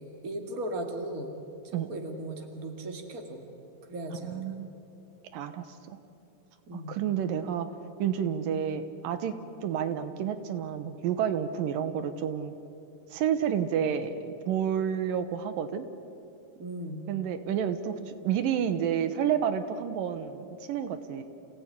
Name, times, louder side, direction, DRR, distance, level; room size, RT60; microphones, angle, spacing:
voice 1, 0.0-1.3 1.6-3.4 3.9-4.5 6.7-7.0 16.6-17.0, right 1 dB, 30° right, 4 dB, 2.3 m, -37 dB
voice 2, 4.2-4.7 5.3-6.0 6.7-9.3 9.6-12.6 13.1-15.9 17.1-21.2, right 8 dB, 85° right, 10 dB, 2.8 m, -30 dB
28.0 x 17.0 x 9.9 m, 2.7 s
omnidirectional pair, 3.9 m